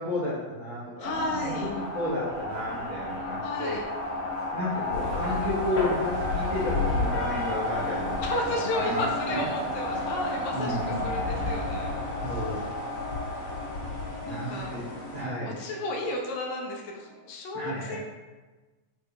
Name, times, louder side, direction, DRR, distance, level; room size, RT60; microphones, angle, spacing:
voice 1, 0.0-1.5 1.9-3.8 4.5-8.3 8.7-9.4 10.5-11.1 12.2-12.7 14.2-14.8 15.1-15.5 17.5-18.0, left 1 dB, 75° right, -9 dB, 1.1 m, -32 dB
voice 2, 1.0-1.7 3.4-3.9 8.2-12.6 14.3-14.7 15.4-18.0, left 2 dB, 80° left, 0 dB, 1.8 m, -33 dB
sound 1, 1.0-16.8, left 1 dB, 60° right, 0.8 m, -33 dB
sound 2, 4.9-15.2, left 3 dB, 55° left, 2.2 m, -35 dB
5.1 x 2.3 x 2.8 m, 1.2 s
omnidirectional pair, 3.4 m